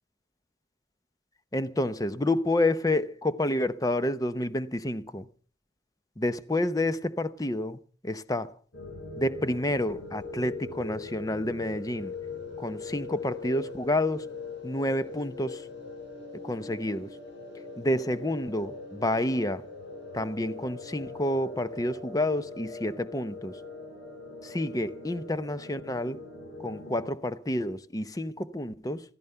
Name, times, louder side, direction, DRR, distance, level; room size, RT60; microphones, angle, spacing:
voice 1, 1.5-5.3 6.2-7.8 8.0-8.5 9.2-12.1 12.6-14.3 14.6-15.6 16.4-17.1 17.8-19.7 20.1-23.6 24.4-26.2 26.6-29.0, left 1 dB, 20° left, 0.8 m, -29 dB
sound 1, 8.7-27.1, left 3 dB, 70° left, 7.9 m, -41 dB
14.5 x 14.0 x 5.7 m
head